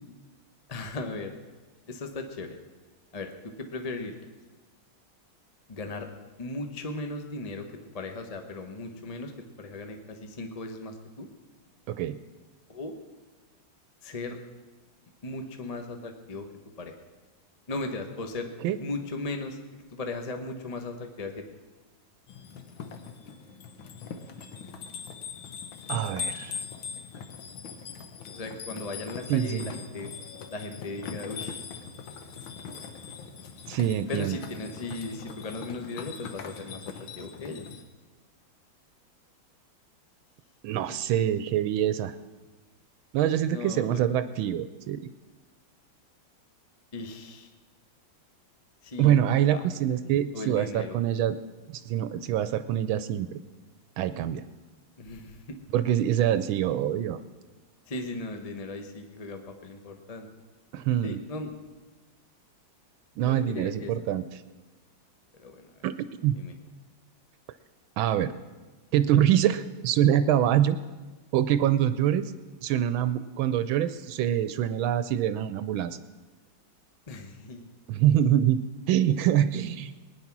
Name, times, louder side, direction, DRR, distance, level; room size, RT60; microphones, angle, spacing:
voice 1, 0.7-1.3 1.9-2.6 3.1-4.1 5.7-6.1 6.4-7.7 7.9-9.3 9.6-11.3 12.7-12.9 14.0-14.4 15.2-16.5 16.8-16.9 17.7-18.5 18.8-19.6 19.9-21.4 28.3-30.1 30.5-31.6 34.1-37.6 40.9-41.0 43.5-44.0 46.9-47.5 48.8-49.2 49.5-49.6 50.3-51.0 55.0-55.6 57.9-60.3 61.0-61.5 63.3-63.9 65.4-65.7 66.4-66.5 77.1-77.6, left 2 dB, 30° left, 5 dB, 0.7 m, -37 dB
voice 2, 11.9-12.2 18.6-18.8 25.9-26.6 29.3-29.7 33.7-34.4 40.6-42.1 43.1-45.0 49.0-51.4 51.7-53.3 54.0-54.4 55.7-57.2 60.7-61.2 63.2-64.3 65.8-66.0 66.2-66.3 68.0-68.3 68.9-70.8 71.3-72.3 72.6-76.0 77.9-79.9, right 11 dB, 80° right, 12 dB, 1.4 m, -25 dB
sound 1, 22.3-37.8, left 6 dB, 75° left, 1.9 m, -41 dB
19.5 x 9.9 x 6.0 m, 1.3 s
omnidirectional pair, 2.2 m